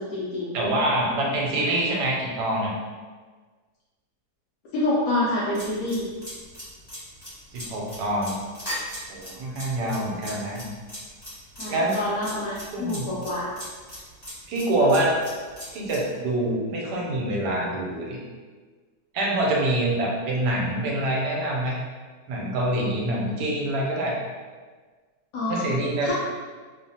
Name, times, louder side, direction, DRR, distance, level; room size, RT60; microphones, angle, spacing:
voice 1, 0.0-0.6 4.7-6.1 11.6-13.5 25.3-25.7 26.0-26.1, left 1 dB, 70° left, -9 dB, 1.0 m, -27 dB
voice 2, 0.5-2.7 7.5-8.4 9.1-10.6 11.7-12.0 12.7-13.1 14.5-15.2 15.7-18.2 19.1-21.8 22.3-24.2 25.5-26.1, right 1 dB, 85° right, -2 dB, 1.2 m, -25 dB
sound 1, 5.5-16.0, equal, 15° left, 1.1 m, -38 dB
3.0 x 2.1 x 2.7 m, 1.4 s
omnidirectional pair, 1.7 m